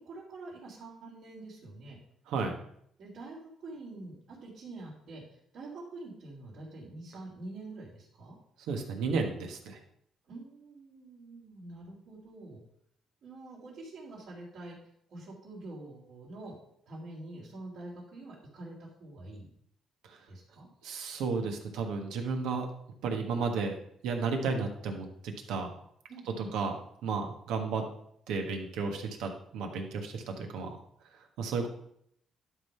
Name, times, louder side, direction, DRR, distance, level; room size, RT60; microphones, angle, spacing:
voice 1, 0.0-2.0 3.0-8.4 10.3-12.6 13.2-14.8 15.1-16.5 16.9-19.5 20.3-20.7 26.1-26.5, right 2 dB, 70° right, -8 dB, 3.5 m, -46 dB
voice 2, 2.3-2.6 8.6-9.8 20.0-20.2 20.8-22.7 23.0-23.7 24.0-25.7 26.4-26.8 27.0-27.8 28.3-30.8 31.4-31.7, right 4 dB, 90° right, 4 dB, 1.4 m, -33 dB
11.5 x 3.9 x 5.6 m, 0.70 s
cardioid pair, 90°, 0 cm